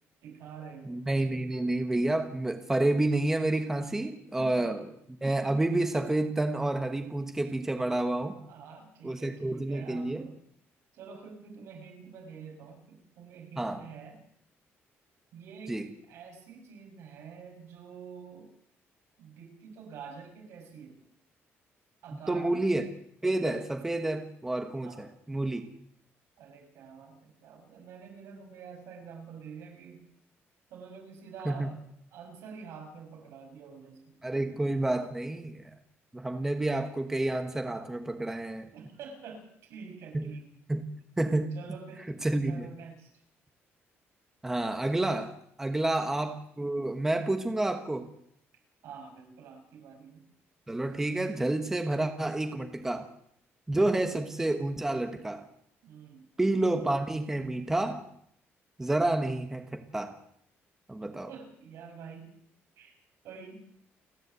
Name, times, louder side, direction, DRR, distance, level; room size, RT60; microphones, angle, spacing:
voice 1, 0.2-1.3 3.8-4.0 4.4-4.8 8.3-10.3 10.9-14.2 15.3-18.5 19.2-21.0 22.0-22.7 24.8-25.0 26.4-30.0 30.7-31.8 32.1-34.2 38.7-40.4 41.5-42.1 42.4-43.1 45.8-46.1 48.8-50.3 53.9-54.1 55.8-56.3 61.3-62.3 62.8-63.0 63.2-63.7, right 6 dB, 75° right, 3 dB, 6.2 m, -47 dB
voice 2, 0.8-4.8 5.2-8.4 9.0-10.3 13.6-13.8 15.7-15.9 22.3-22.8 23.2-25.7 31.4-31.7 34.2-35.6 36.1-38.7 40.1-40.3 40.7-40.9 41.2-41.5 42.2-42.7 44.4-48.1 50.7-53.1 53.7-55.5 56.4-58.0 58.8-60.2 60.9-61.3, right 2 dB, 10° right, 7 dB, 1.3 m, -29 dB
29.5 x 11.0 x 8.2 m, 0.70 s
cardioid pair, 175°, 5 cm